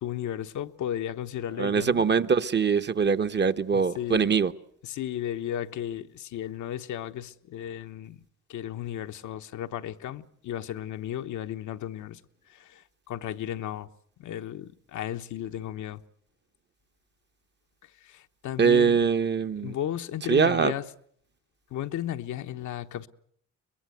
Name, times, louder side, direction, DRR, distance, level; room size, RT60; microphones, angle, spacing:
voice 1, 0.0-2.0 3.7-4.4 4.8-8.2 8.5-12.2 12.5-13.9 14.2-16.0 18.0-19.0 19.6-20.8 21.7-23.1, left 11 dB, 75° left, 1.1 m, -34 dB
voice 2, 1.6-4.5 18.6-19.8 20.3-20.7, right 6 dB, 35° right, 1.0 m, -23 dB
23.5 x 21.0 x 7.9 m
cardioid pair, 90°, 30 cm